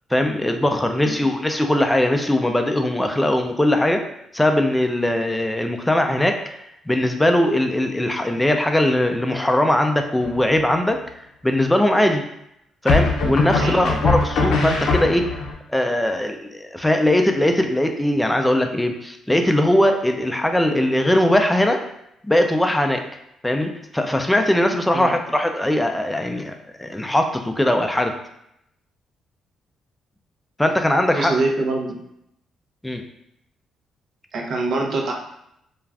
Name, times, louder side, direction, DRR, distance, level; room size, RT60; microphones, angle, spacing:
voice 1, 0.1-4.0 4.3-6.4 6.9-11.0 11.4-12.2 12.8-15.3 15.7-21.8 22.2-23.0 23.4-28.1 30.6-31.4 32.8-33.0, left 1 dB, 10° left, 4 dB, 0.3 m, -20 dB
sound 1, 10.2-10.8 12.9-15.5, left 4 dB, 75° left, 0.5 m, -21 dB
voice 2, 13.6-14.0 24.9-25.1 31.1-32.0 34.3-35.1, right 2 dB, 65° right, 0 dB, 0.6 m, -24 dB
2.3 x 2.3 x 3.2 m, 0.79 s
cardioid pair, 90°, 0 cm